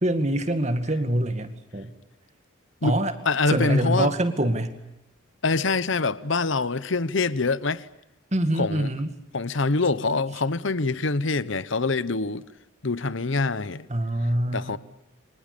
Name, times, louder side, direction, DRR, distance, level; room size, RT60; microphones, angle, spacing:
voice 1, 0.0-1.9 2.8-3.1 3.5-4.8 8.3-9.1 13.9-14.8, right 1 dB, 35° right, 2.1 m, -25 dB
voice 2, 3.3-4.1 5.4-7.9 8.5-8.9 9.3-12.4 12.8-13.9 14.5-14.8, left 3 dB, 65° left, 1.0 m, -25 dB
29.0 x 24.5 x 6.8 m
head